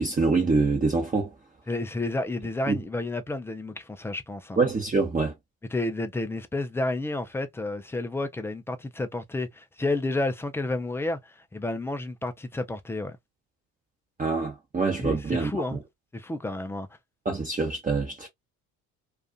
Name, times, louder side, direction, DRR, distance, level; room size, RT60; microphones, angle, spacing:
voice 1, 0.0-1.3 2.7-2.8 4.6-5.3 14.2-15.8 17.2-18.3, right 4 dB, 20° right, 0.8 m, -25 dB
voice 2, 1.7-4.6 5.7-13.2 15.0-15.8 16.1-16.9, left 2 dB, 5° left, 0.3 m, -31 dB
2.4 x 2.4 x 2.3 m
hypercardioid pair, 60°, 43 cm